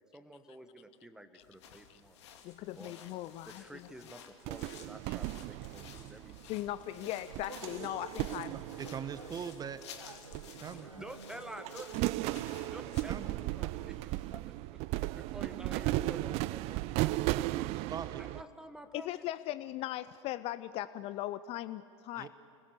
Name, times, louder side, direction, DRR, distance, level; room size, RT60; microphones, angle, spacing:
voice 1, 0.0-2.2 2.7-3.0 3.4-6.4 10.8-12.4 12.7-14.1 14.5-17.7 18.2-19.2, right 1 dB, 5° right, 9 dB, 1.5 m, -50 dB
sound 1, 1.4-13.3, left 8 dB, 60° left, 2.2 m, -54 dB
voice 2, 2.4-3.9 4.7-4.8 5.1-5.2 6.4-8.6 18.9-22.3, left 14 dB, 40° left, 16 dB, 0.5 m, -39 dB
sound 2, 4.4-6.8 7.3-9.8 10.3-11.2 11.5-18.4, right 18 dB, 40° right, 0.4 m, -36 dB
sound 3, 6.9-14.4, right 3 dB, 85° right, 1.0 m, -52 dB
voice 3, 8.5-9.8 10.4-10.9 12.8-13.3 17.9-18.2 22.2-22.3, right 7 dB, 25° right, 12 dB, 1.0 m, -42 dB
26.5 x 20.5 x 6.9 m, 2.8 s
figure-of-eight pair, 80°, 16 cm